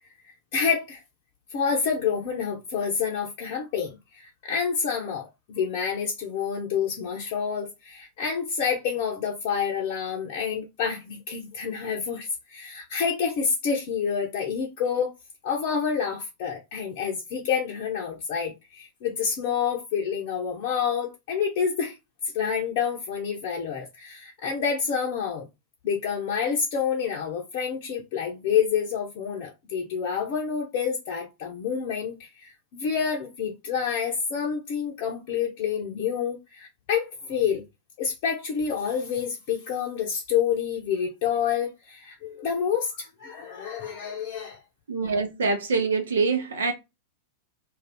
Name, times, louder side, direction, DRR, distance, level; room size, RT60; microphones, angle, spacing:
voice 1, 0.5-1.0 1.5-15.1 15.4-22.0 22.3-25.5 25.8-37.6 38.0-44.6, left 7 dB, 45° left, 0.6 m, -28 dB
voice 2, 44.9-46.7, right 4 dB, 65° right, 0.7 m, -25 dB
2.5 x 2.3 x 3.4 m
figure-of-eight pair, 90°, 0 cm